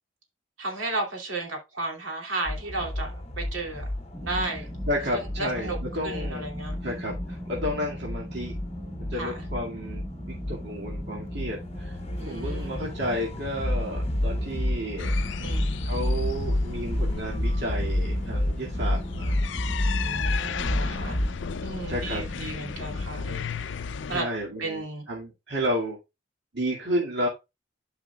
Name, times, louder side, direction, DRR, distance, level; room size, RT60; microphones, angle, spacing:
voice 1, 0.6-3.8 4.2-4.6 5.4-5.8 6.0-7.0 9.2-9.4 12.2-13.0 15.4-15.8 20.0-21.2 21.6-23.7 24.1-24.2 24.6-25.0, right 2 dB, 85° right, 2.7 m, -34 dB
sound 1, 2.5-21.3, left 1 dB, 30° left, 0.9 m, -30 dB
sound 2, 4.1-23.1, equal, 10° right, 1.1 m, -40 dB
voice 2, 4.9-6.5 6.8-8.5 9.0-10.0 10.3-12.0 12.2-15.1 15.8-19.4 21.9-22.2 24.1-26.0 26.5-27.3, equal, 60° right, 2.1 m, -31 dB
sound 3, 15.0-24.2, left 6 dB, 65° left, 0.4 m, -35 dB
13.0 x 4.9 x 2.3 m
head